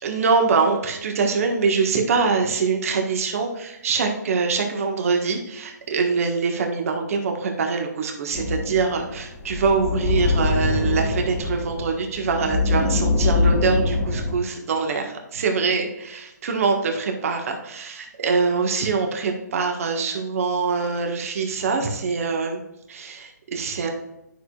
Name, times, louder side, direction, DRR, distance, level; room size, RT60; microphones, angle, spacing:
voice 1, 0.0-22.6 22.9-23.9, right 4 dB, 50° right, 3 dB, 1.5 m, -24 dB
sound 1, 8.3-14.3, left 3 dB, 5° left, 1.4 m, -23 dB
10.0 x 6.1 x 2.4 m, 0.89 s
hypercardioid pair, 150°, 10 cm